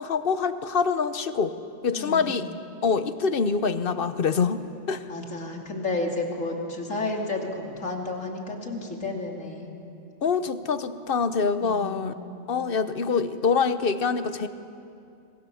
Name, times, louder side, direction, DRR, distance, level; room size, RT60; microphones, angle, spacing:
voice 1, 0.0-1.5 1.8-2.5 2.8-5.0 10.2-12.1 12.5-14.5, left 5 dB, 50° left, 12 dB, 1.0 m, -25 dB
voice 2, 1.9-2.5 5.1-9.7 11.6-12.4, left 2 dB, 90° left, 1 dB, 3.1 m, -32 dB
26.5 x 21.5 x 7.1 m, 2.6 s
omnidirectional pair, 1.3 m